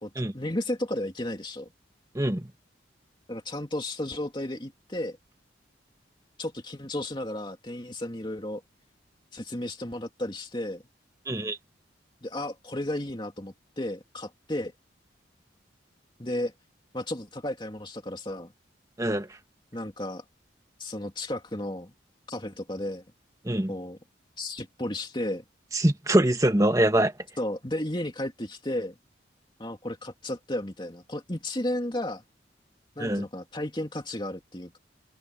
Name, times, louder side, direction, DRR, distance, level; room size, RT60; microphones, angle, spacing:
voice 1, 0.0-1.7 3.3-5.2 6.4-8.6 9.3-10.8 12.2-14.7 16.2-16.5 16.9-18.5 19.7-20.2 20.8-21.9 22.3-23.0 23.7-24.0 24.4-25.4 27.4-28.9 29.6-32.2 33.0-34.8, left 1 dB, 25° left, 2.8 m, -33 dB
voice 2, 2.1-2.5 11.3-11.6 19.0-19.3 23.4-23.7 25.7-27.1 33.0-33.3, right 1 dB, 15° right, 1.4 m, -23 dB
open air
head